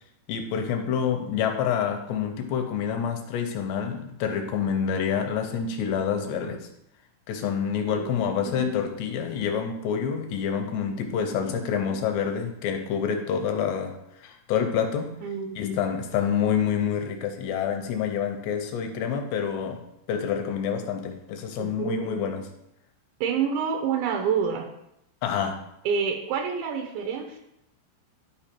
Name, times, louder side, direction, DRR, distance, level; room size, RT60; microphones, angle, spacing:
voice 1, 0.3-6.7 7.3-15.2 15.6-19.8 20.1-22.5 25.2-25.6, left 7 dB, 80° left, 4 dB, 2.7 m, -27 dB
voice 2, 7.9-8.7 11.5-11.7 15.2-15.6 21.6-22.1 23.2-24.7 25.9-27.4, right 6 dB, 80° right, 3 dB, 3.1 m, -28 dB
12.0 x 4.8 x 4.4 m, 0.79 s
omnidirectional pair, 5.3 m